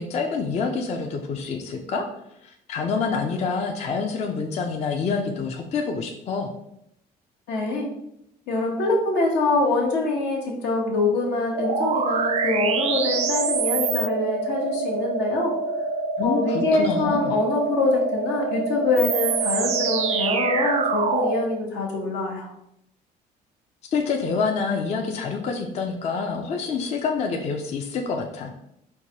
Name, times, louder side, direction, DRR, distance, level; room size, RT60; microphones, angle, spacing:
voice 1, 0.0-2.1 2.4-6.5 16.2-17.4 23.9-28.6, left 5 dB, 40° left, 3 dB, 0.4 m, -27 dB
voice 2, 7.5-7.9 8.5-15.5 16.2-22.5, left 2 dB, 80° left, 0 dB, 1.0 m, -24 dB
sound 1, 11.6-21.5, right 4 dB, 40° right, 0.4 m, -25 dB
4.5 x 2.2 x 2.8 m, 0.79 s
cardioid pair, 110°, 17 cm